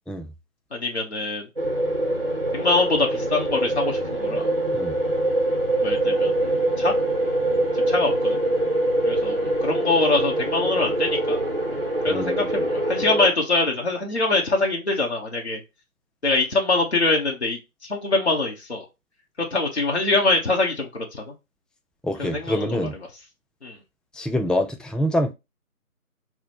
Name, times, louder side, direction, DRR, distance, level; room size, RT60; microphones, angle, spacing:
voice 1, 0.7-1.5 2.5-4.5 5.8-7.0 7.7-8.4 9.0-11.4 12.0-15.6 16.2-18.8 19.5-21.3 22.2-22.9 23.6-23.8, left 3 dB, 45° left, 0.9 m, -24 dB
sound 1, 1.6-13.3, right 1 dB, 40° right, 0.6 m, -24 dB
voice 2, 12.1-12.5 22.0-22.9 24.1-25.3, left 1 dB, ahead, 0.3 m, -25 dB
5.9 x 2.1 x 2.8 m
figure-of-eight pair, 175°, 45 cm